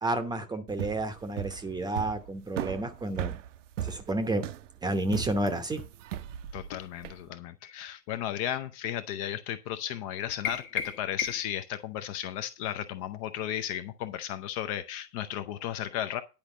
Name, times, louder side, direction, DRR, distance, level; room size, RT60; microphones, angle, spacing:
voice 1, 0.0-3.4 3.8-4.4 4.8-5.8, right 2 dB, 10° right, 9 dB, 0.8 m, -30 dB
sound 1, 0.7-7.2, right 10 dB, 50° right, 0.8 m, -37 dB
voice 2, 6.5-16.2, left 11 dB, 25° left, 11 dB, 0.5 m, -34 dB
sound 2, 10.4-11.6, left 8 dB, 60° left, 1.5 m, -34 dB
10.5 x 5.0 x 6.9 m, 0.29 s
figure-of-eight pair, 100°, 48 cm